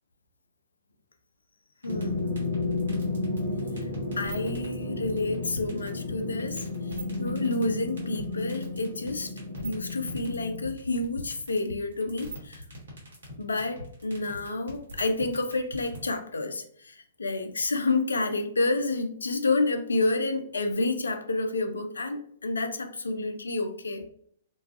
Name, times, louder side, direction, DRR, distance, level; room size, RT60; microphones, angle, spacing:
voice 1, 1.8-2.4 4.2-9.3 9.6-12.6 13.4-24.1, left 2 dB, 75° left, 7 dB, 0.3 m, -29 dB
sound 1, 1.8-16.0, equal, 65° right, 1.0 m, -41 dB
sound 2, 1.9-10.7, left 2 dB, 55° left, 0.8 m, -32 dB
2.3 x 2.3 x 2.3 m, 0.63 s
figure-of-eight pair, 115°, 0 cm